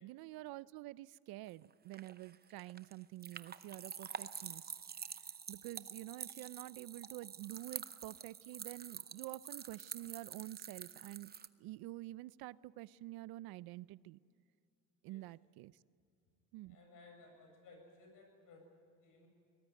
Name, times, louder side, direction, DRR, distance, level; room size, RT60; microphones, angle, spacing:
voice 1, 0.0-4.7 5.5-11.3 11.6-14.2 15.0-15.8 16.5-16.8, right 17 dB, 85° right, 20 dB, 0.6 m, -48 dB
sound 1, 1.5-11.5, right 7 dB, 25° right, 0.8 m, -48 dB
voice 2, 16.7-19.3, left 3 dB, 60° left, 3 dB, 7.5 m, -60 dB
23.0 x 19.0 x 9.4 m, 2.5 s
cardioid pair, 120°, 36 cm